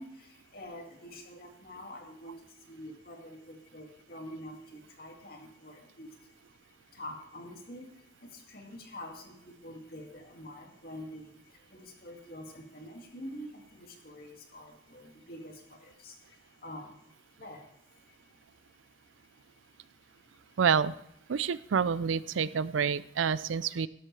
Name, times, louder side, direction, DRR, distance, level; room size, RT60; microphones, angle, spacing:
voice 1, 0.0-18.4 19.0-19.4 19.8-20.5, left 1 dB, 50° left, 2 dB, 2.2 m, -47 dB
voice 2, 20.6-20.9 21.3-23.9, right 6 dB, 85° right, 18 dB, 0.4 m, -28 dB
12.5 x 12.0 x 3.3 m, 0.76 s
head